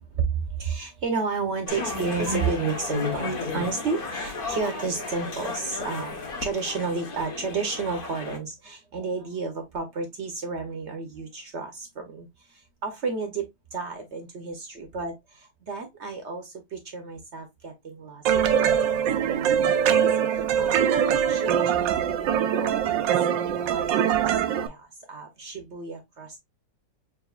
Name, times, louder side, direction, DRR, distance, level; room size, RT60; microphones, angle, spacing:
voice 1, 0.1-20.0 20.3-20.9 21.3-22.0 22.5-26.4, right 4 dB, 55° right, 0.8 m, -32 dB
sound 1, 1.7-8.4, left 3 dB, 45° left, 0.7 m, -33 dB
sound 2, 18.2-24.7, right 8 dB, 90° right, 1.3 m, -23 dB
6.1 x 2.6 x 2.3 m
omnidirectional pair, 2.0 m